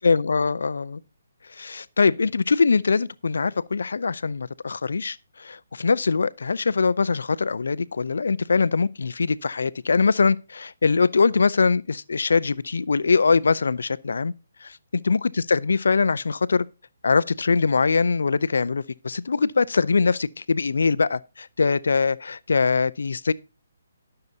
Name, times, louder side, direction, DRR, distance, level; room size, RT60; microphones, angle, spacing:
voice 1, 0.0-1.0 1.6-14.3 14.6-14.8 15.0-16.7 17.0-23.3, left 4 dB, 75° left, 0.4 m, -22 dB
17.5 x 6.7 x 2.7 m
hypercardioid pair, 150°, 0 cm